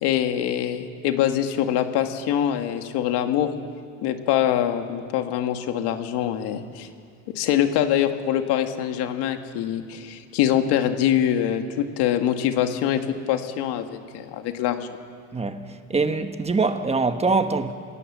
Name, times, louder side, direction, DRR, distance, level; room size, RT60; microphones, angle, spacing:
voice 1, 0.0-3.5 4.0-6.9 7.3-15.0, left 10 dB, 85° left, 1.9 m, -24 dB
voice 2, 15.9-17.7, right 3 dB, 15° right, 1.3 m, -23 dB
27.0 x 18.0 x 7.5 m
cardioid pair, 130°, 39 cm